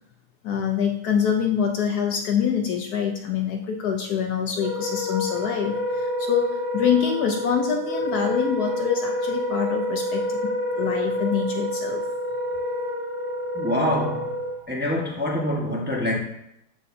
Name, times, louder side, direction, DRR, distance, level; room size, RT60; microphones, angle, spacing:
voice 1, 0.4-12.0, left 7 dB, 70° left, 1.1 m, -25 dB
Wind instrument woodwind instrument, 4.5-14.6, left 1 dB, 55° right, 0.3 m, -28 dB
voice 2, 13.5-14.3 14.7-16.2, left 1 dB, 5° right, 1.0 m, -25 dB
7.5 x 6.6 x 2.7 m
omnidirectional pair, 1.9 m